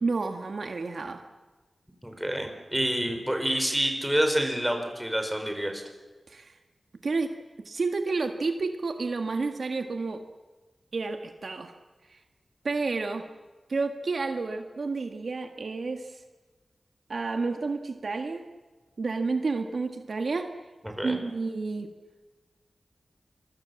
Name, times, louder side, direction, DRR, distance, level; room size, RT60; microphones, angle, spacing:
voice 1, 0.0-1.2 6.3-6.5 7.0-7.3 7.7-10.2 10.9-11.7 12.1-12.2 12.6-13.2 13.7-16.2 17.1-18.4 19.0-20.5 21.0-21.9, right 3 dB, 65° right, 5 dB, 1.8 m, -30 dB
voice 2, 2.0-5.8 20.8-21.2, equal, 5° right, 4 dB, 5.1 m, -28 dB
26.0 x 23.0 x 7.2 m, 1.3 s
wide cardioid pair, 90°, 0 cm